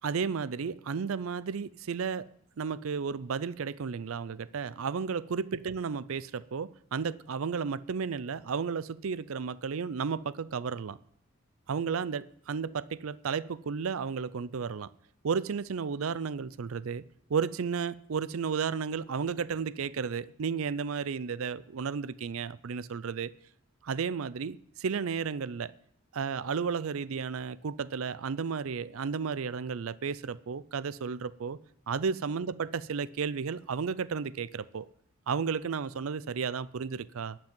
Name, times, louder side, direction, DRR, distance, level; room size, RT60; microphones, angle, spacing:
voice 1, 0.0-2.3 2.6-11.0 11.7-14.9 15.2-17.0 17.3-23.3 23.8-25.7 26.1-31.6 31.9-34.9 35.3-37.4, right 6 dB, 75° right, 0.5 m, -33 dB
11.5 x 6.1 x 9.2 m
head